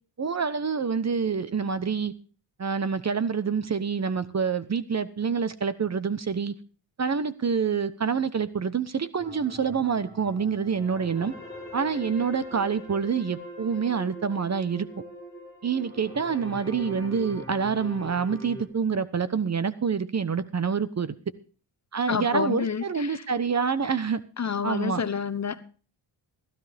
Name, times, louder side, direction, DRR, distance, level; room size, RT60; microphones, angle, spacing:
voice 1, 0.2-2.1 2.6-6.5 7.0-11.3 11.7-14.9 15.6-21.1 21.9-24.2 24.6-25.0, right 6 dB, 35° right, 1.0 m, -27 dB
sound 1, 9.2-18.6, left 1 dB, 5° left, 6.2 m, -42 dB
voice 2, 22.1-23.2 24.4-25.6, left 6 dB, 35° left, 1.1 m, -28 dB
15.5 x 13.5 x 3.5 m
cardioid pair, 80°, 48 cm